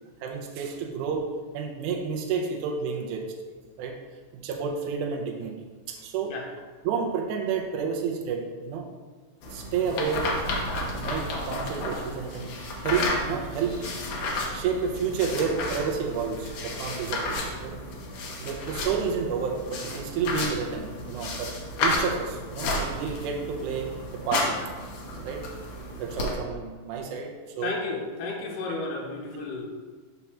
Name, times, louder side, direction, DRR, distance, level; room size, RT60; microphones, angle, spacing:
voice 1, 0.2-1.2 1.5-3.3 3.8-4.0 4.3-6.3 6.8-8.9 9.5-10.3 10.9-14.0 14.3-17.7 18.4-21.5 21.8-24.7 25.2-25.4 26.0-27.8, right 6 dB, 80° right, 2 dB, 2.1 m, -30 dB
sound 1, 9.4-26.3, left 2 dB, 65° left, 2.0 m, -32 dB
voice 2, 27.6-29.7, left 3 dB, 85° left, -1 dB, 2.5 m, -32 dB
5.9 x 4.1 x 6.0 m, 1.4 s
omnidirectional pair, 3.6 m